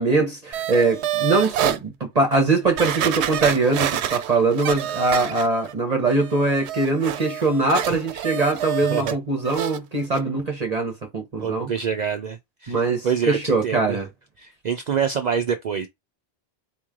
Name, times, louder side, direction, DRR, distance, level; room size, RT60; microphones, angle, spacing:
voice 1, 0.0-11.7 12.7-14.1, right 3 dB, 40° right, 1.0 m, -22 dB
sound 1, 0.5-1.8 2.3-2.4 2.8-5.7 6.1-9.2 9.4-9.8 10.1-10.2, right 11 dB, 85° right, 0.8 m, -27 dB
voice 2, 11.4-14.0 14.4-15.9, right 7 dB, 55° right, 0.5 m, -26 dB
4.3 x 3.1 x 3.6 m
omnidirectional pair, 1.1 m